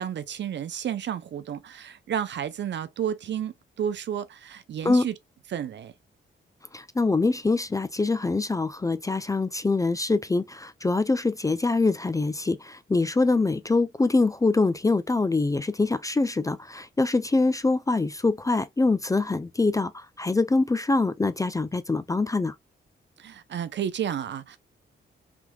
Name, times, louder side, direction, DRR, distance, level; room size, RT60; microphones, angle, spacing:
voice 1, 0.0-5.1 5.5-5.9 23.2-24.6, right 9 dB, 60° right, 0.5 m, -31 dB
voice 2, 6.7-22.5, left 3 dB, 15° left, 0.3 m, -24 dB
3.4 x 2.9 x 2.3 m
cardioid pair, 70°, 21 cm